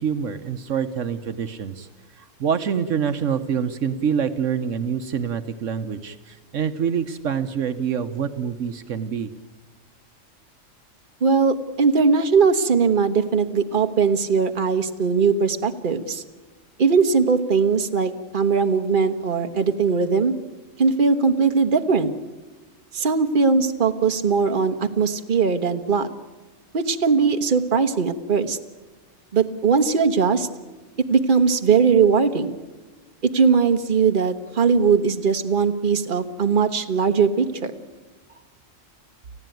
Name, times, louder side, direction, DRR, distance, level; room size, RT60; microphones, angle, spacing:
voice 1, 0.0-1.9 2.2-9.3, right 7 dB, 70° right, 9 dB, 1.3 m, -26 dB
voice 2, 11.2-16.2 16.8-20.3 20.8-22.1 22.9-26.1 26.7-28.6 29.3-30.5 31.0-32.6 33.2-37.7, right 5 dB, 40° right, 8 dB, 1.3 m, -20 dB
30.0 x 15.0 x 9.2 m, 1.3 s
omnidirectional pair, 1.3 m